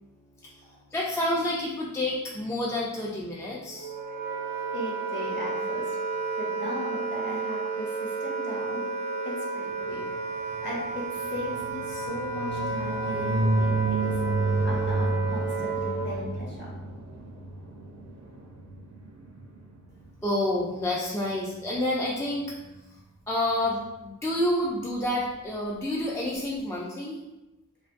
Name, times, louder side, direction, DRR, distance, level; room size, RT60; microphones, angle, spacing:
voice 1, 0.4-4.0 20.2-22.6 22.8-23.0 23.3-27.2, left 1 dB, 10° left, -5 dB, 0.3 m, -29 dB
Wind instrument woodwind instrument, 3.7-16.3, right 3 dB, 75° left, 0.9 m, -32 dB
voice 2, 4.7-5.9 6.4-8.8 9.2-10.0 10.6-14.2 14.6-16.7, left 1 dB, 35° left, -6 dB, 0.9 m, -38 dB
sound 1, 9.9-19.8, right 3 dB, 55° right, 0.5 m, -31 dB
2.3 x 2.2 x 2.5 m, 1.0 s
wide cardioid pair, 55°, 32 cm